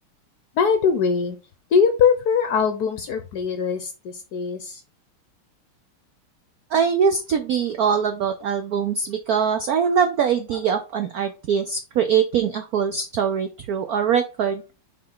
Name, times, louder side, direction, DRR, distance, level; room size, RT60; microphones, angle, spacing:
voice 1, 0.6-1.4 1.7-4.8, left 6 dB, 65° left, 7 dB, 1.0 m, -21 dB
voice 2, 6.7-14.6, right 7 dB, 85° right, 8 dB, 0.8 m, -22 dB
6.2 x 4.3 x 3.9 m, 0.31 s
omnidirectional pair, 2.4 m